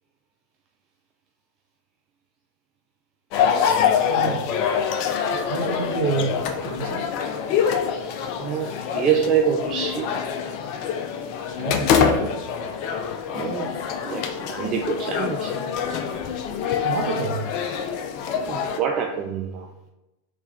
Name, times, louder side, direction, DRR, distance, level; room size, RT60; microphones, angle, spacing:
sound 1, 3.3-18.8, left 7 dB, 45° left, 0.4 m, -25 dB
voice 1, 4.1-4.5 5.4-7.0 11.5-12.3 16.8-17.4, right 5 dB, 55° right, 3 dB, 0.7 m, -29 dB
voice 2, 8.4-10.1 13.3-13.7 14.0-14.2 14.5-15.5 18.5-19.9, right 8 dB, 35° right, 2 dB, 0.4 m, -25 dB
3.3 x 3.2 x 3.7 m, 0.97 s
figure-of-eight pair, 90°, 0 cm